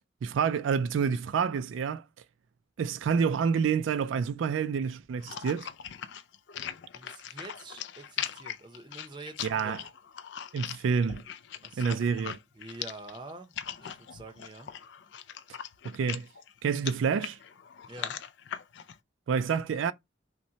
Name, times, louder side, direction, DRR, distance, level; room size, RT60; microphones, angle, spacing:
voice 1, 0.2-2.0 2.8-5.7 9.4-9.8 10.5-11.2 11.8-12.4 15.8-16.3 16.6-17.4 19.3-19.9, right 6 dB, 85° right, 0.3 m, -28 dB
sound 1, 5.2-19.0, left 9 dB, 70° left, 0.4 m, -40 dB
voice 2, 6.9-9.8 11.6-12.0 12.5-14.7 17.9-18.2, right 2 dB, 25° right, 0.6 m, -46 dB
5.7 x 2.1 x 2.7 m
head